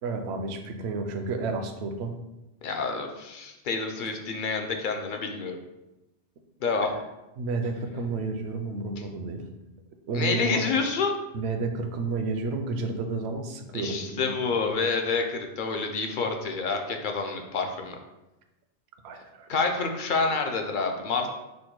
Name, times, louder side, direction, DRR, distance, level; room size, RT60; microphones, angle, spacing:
voice 1, 0.0-2.1 4.0-4.1 6.8-6.9 7.4-9.4 10.1-10.6 11.3-14.6 19.0-19.5, right 3 dB, 70° right, 5 dB, 0.8 m, -31 dB
voice 2, 2.6-5.6 6.6-6.9 10.1-11.2 13.7-18.0 19.5-21.3, left 4 dB, 55° left, 4 dB, 0.6 m, -28 dB
5.1 x 2.1 x 4.5 m, 0.97 s
omnidirectional pair, 1.2 m